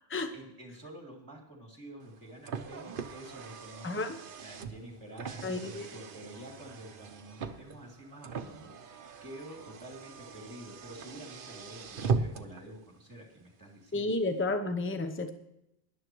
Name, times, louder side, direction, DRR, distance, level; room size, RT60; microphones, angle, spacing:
voice 1, 0.3-14.1, right 1 dB, 20° right, -1 dB, 2.8 m, -49 dB
Car, 2.0-12.6, right 5 dB, 60° right, 0.9 m, -39 dB
voice 2, 3.8-4.2 5.4-5.9 13.9-15.3, left 2 dB, 15° left, 8 dB, 0.8 m, -31 dB
20.5 x 11.0 x 3.1 m, 0.82 s
omnidirectional pair, 1.0 m